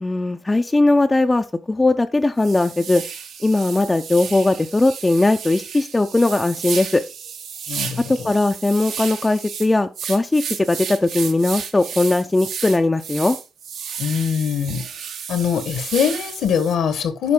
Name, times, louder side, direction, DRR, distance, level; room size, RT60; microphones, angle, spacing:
voice 1, 0.0-3.0 3.4-7.0 8.1-13.4, left 2 dB, 20° left, 0.5 m, -19 dB
sound 1, 1.8-1.9 2.4-16.8, right 7 dB, 70° right, 1.2 m, -33 dB
voice 2, 7.7-8.3 14.0-14.8 15.3-17.3, left 7 dB, 70° left, 1.2 m, -22 dB
9.5 x 4.9 x 3.6 m
cardioid pair, 90°, 0 cm